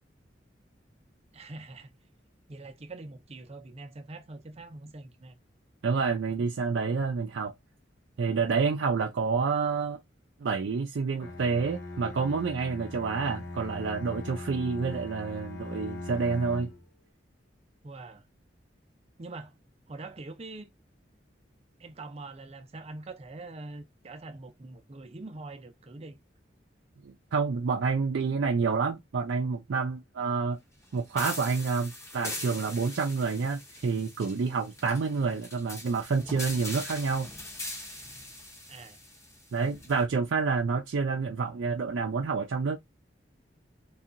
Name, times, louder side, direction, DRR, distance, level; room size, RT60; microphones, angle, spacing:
voice 1, 1.3-2.0 2.5-5.4 17.8-18.3 19.2-19.6 19.9-20.7 21.8-26.2 38.7-39.0, right 2 dB, 35° right, 0.5 m, -44 dB
voice 2, 5.8-7.5 8.2-10.0 10.4-16.7 27.0-30.6 30.9-37.3 39.5-42.8, right 5 dB, 85° right, 0.4 m, -28 dB
Bowed string instrument, 11.2-16.9, left 2 dB, 85° left, 0.7 m, -40 dB
sound 1, 31.2-40.0, left 1 dB, 15° left, 0.7 m, -41 dB
2.8 x 2.3 x 2.5 m
head